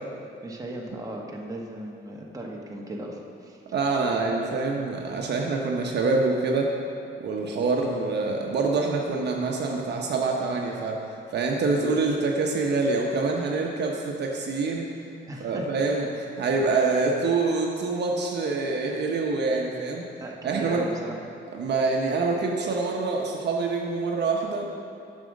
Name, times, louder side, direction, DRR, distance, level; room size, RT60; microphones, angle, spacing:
voice 1, 0.4-3.6 4.1-4.4 15.3-16.0 20.2-21.2, right 1 dB, 15° right, -1 dB, 1.4 m, -37 dB
voice 2, 3.7-6.8 7.2-11.0 11.3-14.9 15.4-20.0 20.4-20.9 21.5-24.7, right 3 dB, 60° right, 0 dB, 1.0 m, -26 dB
7.5 x 6.3 x 6.4 m, 2.5 s
cardioid pair, 90°, 20 cm